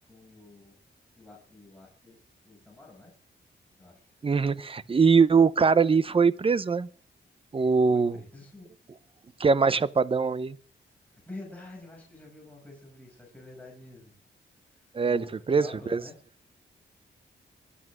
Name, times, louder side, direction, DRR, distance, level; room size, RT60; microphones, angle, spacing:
voice 1, 0.1-0.8 1.2-2.2 2.4-3.1 3.8-4.1 7.9-8.7 11.1-14.1 14.7-16.1, left 2 dB, 5° left, 6.9 m, -47 dB
voice 2, 4.2-6.9 7.5-8.2 9.4-10.5 14.9-16.0, right 5 dB, 30° right, 0.8 m, -22 dB
23.5 x 8.5 x 6.2 m
wide cardioid pair, 160°, 20 cm